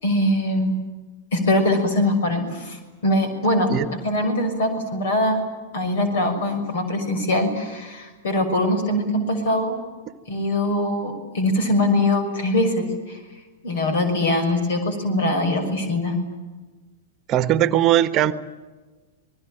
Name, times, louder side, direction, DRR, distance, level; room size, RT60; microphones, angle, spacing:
voice 1, 0.0-0.7 1.3-3.7 4.0-5.4 5.7-9.8 10.3-13.2 13.6-16.2, left 1 dB, 65° left, 8 dB, 6.3 m, -22 dB
voice 2, 17.3-18.3, right 12 dB, 35° right, 14 dB, 1.3 m, -19 dB
27.5 x 20.5 x 9.0 m, 1.3 s
figure-of-eight pair, 100°, 0 cm